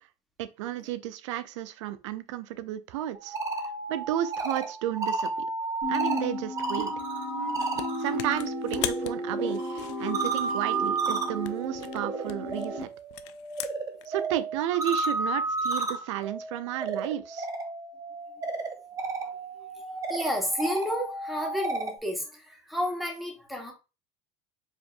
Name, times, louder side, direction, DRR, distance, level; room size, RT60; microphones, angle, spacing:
voice 1, 0.4-3.4 3.9-5.3 5.9-6.9 8.0-12.9 14.1-17.5, right 12 dB, 85° right, 0.5 m, -32 dB
sound 1, 3.1-8.4 8.7-22.0, right 3 dB, 25° right, 0.7 m, -33 dB
sound 2, 5.8-12.8, left 1 dB, 65° right, 1.3 m, -34 dB
sound 3, 7.6-7.9 8.2-11.0 11.4-14.1, left 14 dB, 75° left, 0.4 m, -39 dB
voice 2, 19.6-23.7, equal, ahead, 1.1 m, -32 dB
4.9 x 2.7 x 2.4 m
supercardioid pair, 115°, 15 cm